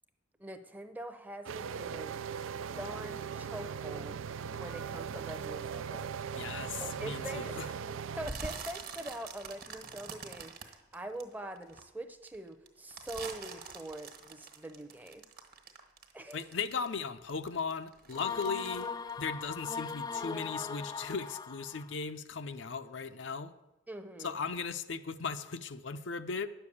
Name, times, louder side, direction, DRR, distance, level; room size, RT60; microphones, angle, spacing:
voice 1, 0.4-2.2 2.8-6.2 6.8-7.6 8.2-15.2 16.1-16.4 23.9-24.4, right 1 dB, 10° right, 0.7 m, -44 dB
sound 1, 1.5-8.3, right 7 dB, 90° right, 0.4 m, -39 dB
voice 2, 6.3-7.7 16.3-18.9 19.2-23.5 24.2-26.5, left 5 dB, 70° left, 0.6 m, -37 dB
sound 2, 8.2-11.8 12.2-17.0 17.3-20.0 20.3-20.7 21.1-21.2, right 4 dB, 50° right, 1.4 m, -45 dB
sound 3, 18.1-21.9, left 5 dB, 20° left, 0.3 m, -39 dB
10.5 x 6.8 x 8.5 m
head